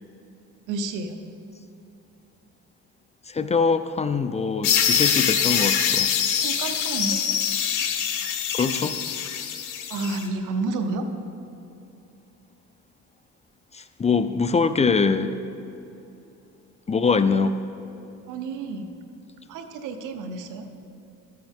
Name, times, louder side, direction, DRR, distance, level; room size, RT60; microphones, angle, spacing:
voice 1, 0.7-1.2 5.6-5.9 6.4-7.2 9.9-11.1 18.3-18.9 19.5-20.7, right 3 dB, 90° right, 7 dB, 0.8 m, -30 dB
voice 2, 3.3-6.1 8.5-9.0 13.7-15.4 16.9-17.6, left 5 dB, 20° left, 11 dB, 0.4 m, -23 dB
sound 1, 4.6-10.2, left 8 dB, 90° left, 0.8 m, -24 dB
13.0 x 7.7 x 3.6 m, 2.9 s
cardioid pair, 90°, 30 cm